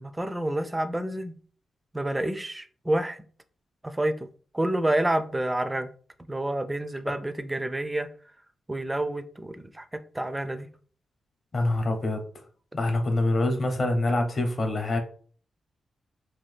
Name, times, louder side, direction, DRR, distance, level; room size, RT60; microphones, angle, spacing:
voice 1, 0.0-1.3 1.9-3.2 3.8-4.2 4.5-5.9 6.3-8.1 8.7-9.8 10.1-10.7, right 1 dB, 15° right, 0.3 m, -28 dB
voice 2, 11.5-12.2 12.7-15.0, left 2 dB, 45° left, 0.7 m, -25 dB
2.8 x 2.2 x 3.2 m
cardioid pair, 95°, 0 cm